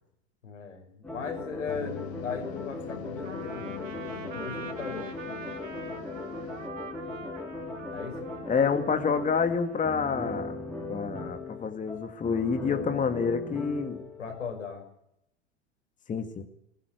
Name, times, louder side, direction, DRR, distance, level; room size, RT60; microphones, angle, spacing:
voice 1, 0.4-3.8 4.2-5.1 7.9-8.3 14.2-14.8, left 5 dB, 80° left, 4 dB, 5.8 m, -38 dB
sound 1, 1.0-14.6, left 2 dB, 5° left, 4.3 m, -39 dB
sound 2, 1.7-6.7, left 10 dB, 55° left, 1.8 m, -43 dB
Trumpet, 3.2-10.3, right 5 dB, 85° right, 2.5 m, -44 dB
voice 2, 8.5-10.6 10.9-14.0 16.1-16.4, left 6 dB, 20° left, 7 dB, 2.0 m, -28 dB
21.0 x 15.5 x 9.3 m, 0.78 s
hypercardioid pair, 90°, 37 cm